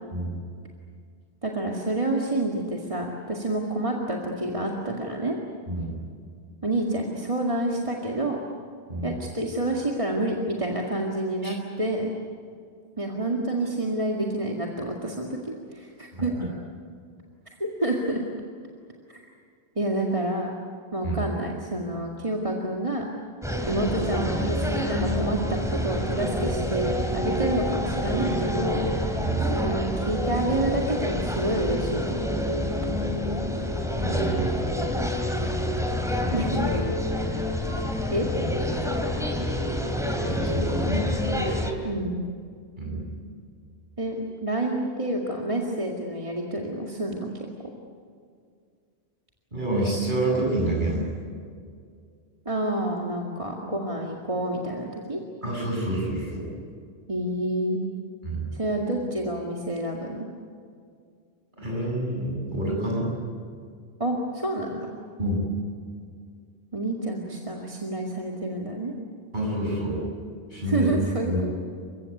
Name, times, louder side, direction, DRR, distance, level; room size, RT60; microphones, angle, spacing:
voice 1, 1.4-5.4 6.6-8.4 9.0-12.1 13.0-16.3 17.6-18.2 19.1-19.2 19.8-20.5 20.9-23.1 23.7-28.8 29.4-32.4 36.3-36.8 38.1-38.3 41.8-42.3 44.0-44.2 44.4-47.3 52.5-55.2 57.1-57.8 58.5-60.3 64.0-64.9 66.7-68.9 70.7-71.5, right 1 dB, 30° right, -1 dB, 2.2 m, -28 dB
sound 1, 23.4-41.7, left 1 dB, 5° right, 3.0 m, -27 dB
voice 2, 33.9-34.5 36.2-36.3 40.3-41.1 42.8-43.1 49.5-51.1 55.4-56.5 58.2-58.4 61.6-63.1 65.2-65.5 69.3-70.1 70.5-70.9 71.3-71.4, right 1 dB, 50° right, -2 dB, 8.3 m, -27 dB
29.0 x 16.5 x 9.8 m, 2.2 s
omnidirectional pair, 1.1 m